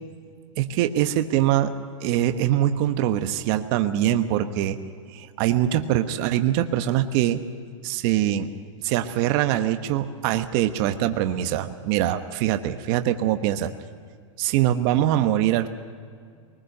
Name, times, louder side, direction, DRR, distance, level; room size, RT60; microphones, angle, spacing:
voice 1, 0.6-1.7 2.0-4.8 5.1-7.4 7.8-8.5 8.8-13.7 14.4-15.7, right 12 dB, 45° right, 8 dB, 1.1 m, -23 dB
22.0 x 20.0 x 6.7 m, 2.1 s
hypercardioid pair, 130°, 17 cm